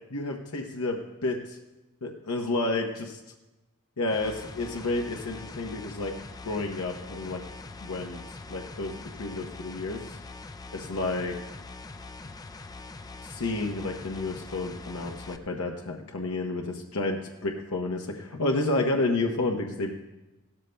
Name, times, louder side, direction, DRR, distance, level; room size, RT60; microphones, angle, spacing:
voice 1, 0.1-1.6 2.0-3.2 4.0-6.1 6.4-7.4 7.8-8.2 8.5-10.0 10.9-11.4 13.2-19.9, left 2 dB, 85° left, 1 dB, 0.9 m, -30 dB
sound 1, 4.1-15.4, left 3 dB, 15° left, 0.4 m, -43 dB
17.0 x 13.0 x 2.2 m, 1.0 s
head